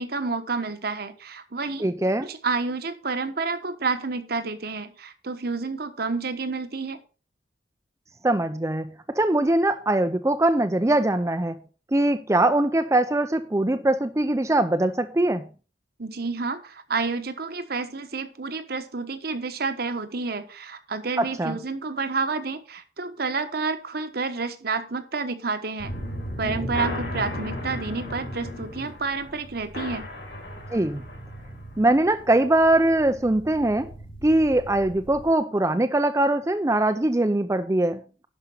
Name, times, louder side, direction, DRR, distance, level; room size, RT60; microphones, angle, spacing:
voice 1, 0.0-1.8 2.2-7.0 16.0-25.9 26.4-30.1, right 4 dB, 55° right, 9 dB, 1.2 m, -29 dB
voice 2, 1.8-2.3 8.2-8.9 9.1-11.6 11.9-15.4 21.2-21.6 30.7-31.0 31.8-33.9 34.2-38.2, right 1 dB, 15° right, 7 dB, 0.5 m, -22 dB
sound 1, 25.8-35.3, left 1 dB, 75° left, 4.2 m, -36 dB
11.5 x 5.3 x 5.5 m, 0.36 s
head